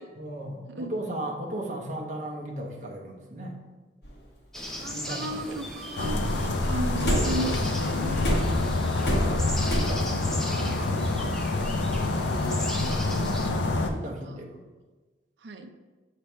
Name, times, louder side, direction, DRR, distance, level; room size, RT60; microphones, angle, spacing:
voice 1, 0.2-3.5 4.9-5.6 9.1-10.8 13.8-14.6, right 1 dB, 40° right, -1 dB, 0.9 m, -36 dB
sound 1, 4.0-4.1 7.0-7.6 8.2-9.8, equal, 65° left, 1.3 m, -26 dB
sound 2, 4.5-13.5, left 1 dB, 5° left, 0.6 m, -38 dB
voice 2, 4.8-8.5 8.9-9.2 12.4-12.9 13.5-13.9 14.2-14.4 15.4-15.7, right 1 dB, 85° right, 6 dB, 0.5 m, -36 dB
sound 3, 6.0-13.9, left 2 dB, 90° left, 0.6 m, -27 dB
6.8 x 3.3 x 4.3 m, 1.3 s
head